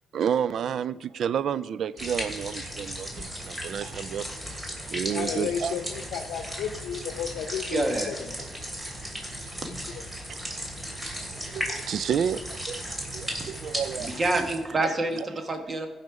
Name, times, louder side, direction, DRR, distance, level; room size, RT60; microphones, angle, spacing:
voice 1, 0.1-4.6 4.9-5.8 11.2-14.1 14.8-14.9 15.2-15.3, right 8 dB, 70° right, 0.3 m, -30 dB
sound 1, 2.0-14.6, equal, 20° right, 2.8 m, -36 dB
voice 2, 5.1-8.3 9.5-9.8, left 8 dB, 80° left, 0.7 m, -33 dB
voice 3, 7.7-8.1 14.0-15.9, right 2 dB, 35° right, 1.5 m, -27 dB
15.5 x 5.5 x 4.8 m
supercardioid pair, 70°, 0 cm